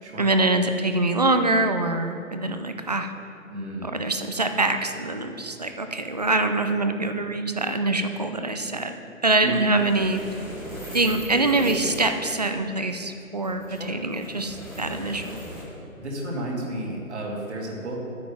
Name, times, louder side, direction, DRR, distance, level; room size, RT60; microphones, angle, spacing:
voice 1, 0.2-3.1 3.8-9.0 9.2-10.2 10.9-15.4, right 2 dB, 30° right, 7 dB, 0.4 m, -24 dB
voice 2, 3.5-3.9 9.4-9.6 13.7-14.0 16.0-18.0, right 1 dB, 55° right, -2 dB, 2.4 m, -32 dB
sound 1, 9.5-12.1 13.4-15.6, right 1 dB, 5° right, 1.7 m, -37 dB
10.5 x 9.2 x 3.4 m, 2.5 s
figure-of-eight pair, 145°, 41 cm